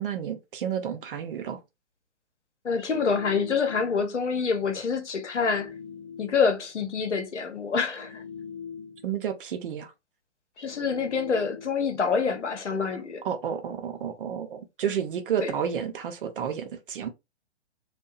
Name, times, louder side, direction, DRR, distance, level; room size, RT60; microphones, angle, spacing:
voice 1, 0.0-1.6 9.0-9.9 13.2-17.1, right 8 dB, 50° right, 0.7 m, -31 dB
voice 2, 2.6-5.7 6.2-8.2 10.6-13.2 15.4-15.5, left 5 dB, 85° left, 0.8 m, -26 dB
sound 1, 2.8-4.1 5.3-6.6 7.9-9.2 10.6-11.9, left 6 dB, 40° left, 0.8 m, -42 dB
2.7 x 2.2 x 2.3 m
figure-of-eight pair, 125°, 34 cm